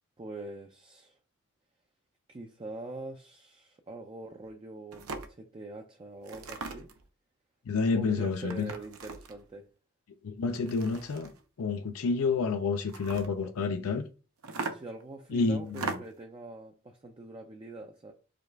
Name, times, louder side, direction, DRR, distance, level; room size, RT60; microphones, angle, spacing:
voice 1, 0.2-1.2 2.3-6.9 7.9-9.7 13.3-13.5 14.7-18.1, right 2 dB, 25° right, 0.4 m, -44 dB
sound 1, 4.4-4.5 4.9-5.3 6.2-7.0 8.4-9.4 10.5-11.4 12.8-13.3 14.4-15.0 15.7-16.2, right 4 dB, 75° right, 0.7 m, -39 dB
voice 2, 7.7-8.7 10.2-11.3 11.6-14.1 15.3-15.9, left 4 dB, 75° left, 0.4 m, -29 dB
5.0 x 2.4 x 4.5 m
head